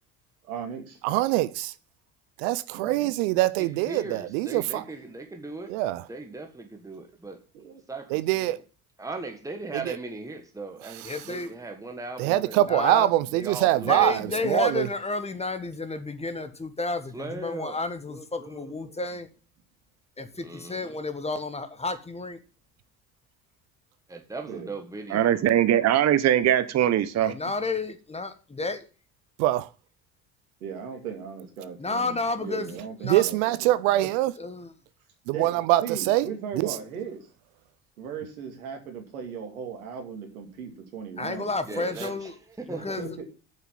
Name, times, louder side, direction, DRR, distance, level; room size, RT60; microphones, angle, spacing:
voice 1, 0.4-1.0 2.7-3.3 4.7-4.8 7.6-7.8 24.5-24.7 30.6-34.1 35.3-37.2 38.0-41.9 42.7-43.2, right 6 dB, 85° right, 2.4 m, -38 dB
voice 2, 1.0-1.7 2.4-4.8 5.7-6.0 8.1-8.6 9.9-10.0 12.2-14.9 29.4-29.7 33.0-34.3 35.3-36.3 36.6-36.7, right 16 dB, 65° right, 0.6 m, -24 dB
voice 3, 3.6-7.4 7.9-8.6 9.0-12.7 13.3-14.5 17.1-17.8 18.1-19.0 20.4-21.0 24.1-25.4 41.7-43.0, right 3 dB, 10° right, 1.5 m, -39 dB
voice 4, 11.0-11.5 12.6-13.1 13.8-19.3 20.2-22.4 27.2-28.8 31.8-32.8 33.0-33.2 34.0-34.1 34.4-34.7 41.2-42.3 42.7-43.2, left 3 dB, 15° left, 1.4 m, -31 dB
voice 5, 25.1-27.3, right 11 dB, 40° right, 0.9 m, -21 dB
7.6 x 5.8 x 7.4 m
hypercardioid pair, 70°, 42 cm